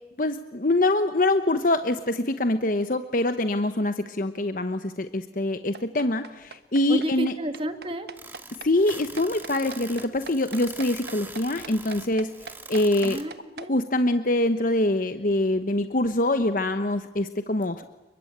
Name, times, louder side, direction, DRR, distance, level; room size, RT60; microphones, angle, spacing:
voice 1, 0.2-7.3 8.6-12.3 12.7-13.2 13.7-17.8, left 1 dB, 50° left, 9 dB, 1.0 m, -24 dB
sound 1, 5.7-13.7, right 4 dB, 65° right, 1.4 m, -41 dB
voice 2, 6.9-8.1 13.0-13.7, equal, 30° right, 8 dB, 1.9 m, -31 dB
sound 2, 8.2-13.2, right 3 dB, 10° right, 2.0 m, -43 dB
30.0 x 22.0 x 8.8 m, 1.0 s
head